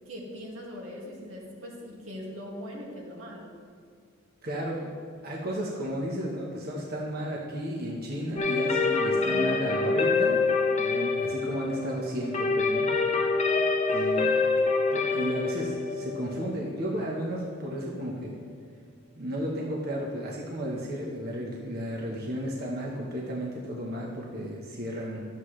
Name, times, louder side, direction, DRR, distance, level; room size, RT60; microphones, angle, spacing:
voice 1, 0.1-3.5 9.1-10.1, equal, 90° right, -3 dB, 2.2 m, -41 dB
voice 2, 4.4-4.9 5.2-10.4 10.8-12.9 13.9-18.4 19.1-25.3, equal, 50° right, -3 dB, 1.1 m, -33 dB
sound 1, 8.4-18.0, left 4 dB, 35° left, 0.8 m, -26 dB
12.0 x 7.6 x 3.2 m, 2.1 s
head